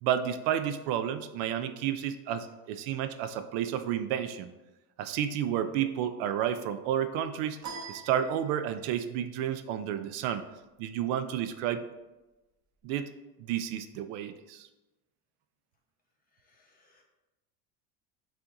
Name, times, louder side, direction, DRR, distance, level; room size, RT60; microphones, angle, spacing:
voice 1, 0.0-4.5 5.0-7.6 7.9-10.4 10.8-11.8 12.8-13.1 13.4-14.7, right 10 dB, 70° right, 10 dB, 0.5 m, -31 dB
sound 1, 7.6-9.0, right 5 dB, 35° right, 0.9 m, -43 dB
voice 2, 16.4-17.0, left 3 dB, 20° left, -1 dB, 1.0 m, -66 dB
6.9 x 2.6 x 2.6 m, 1.1 s
supercardioid pair, 115°, 45 cm